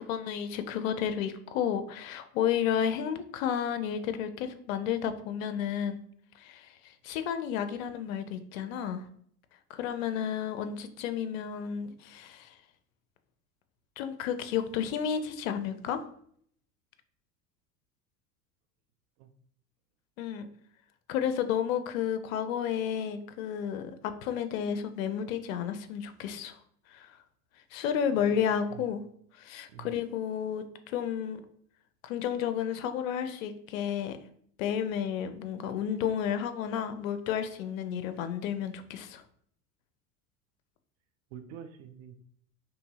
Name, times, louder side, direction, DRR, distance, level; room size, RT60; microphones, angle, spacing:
voice 1, 0.0-6.0 6.4-9.1 9.7-12.6 14.0-16.0 20.2-20.5 21.1-26.6 26.9-27.2 27.7-29.0 29.3-31.4 32.0-34.2 34.6-39.2, left 8 dB, 60° left, 10 dB, 0.5 m, -32 dB
voice 2, 28.1-28.9 29.7-29.9 41.3-42.2, right 9 dB, 50° right, 8 dB, 0.4 m, -47 dB
2.7 x 2.6 x 2.7 m, 0.64 s
figure-of-eight pair, 75°, 46 cm